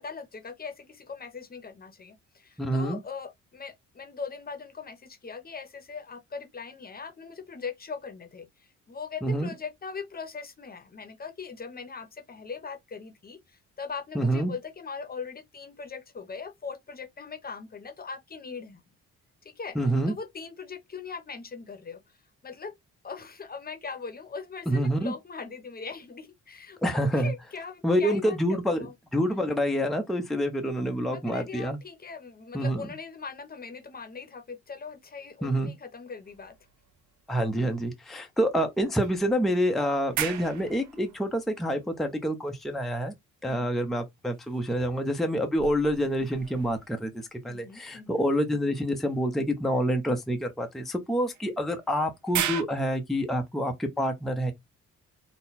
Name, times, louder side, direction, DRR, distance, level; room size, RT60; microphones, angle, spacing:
voice 1, 0.0-18.8 19.4-19.8 20.1-22.0 22.4-22.7 23.0-28.9 29.3-29.5 31.1-36.6 43.4-43.7 47.4-48.2, left 5 dB, 30° left, 0.9 m, -40 dB
voice 2, 2.6-3.0 9.2-9.5 14.1-14.5 19.7-20.1 24.7-25.1 26.8-27.3 27.8-31.8 32.5-32.9 35.4-35.7 37.3-43.1 43.4-54.5, equal, ahead, 0.6 m, -27 dB
sound 1, 36.2-37.5 37.9-38.0 39.0-42.5 44.2-47.3 49.1-49.2 51.3-52.6, right 11 dB, 70° right, 0.7 m, -38 dB
4.0 x 2.1 x 4.1 m
cardioid pair, 90°, 30 cm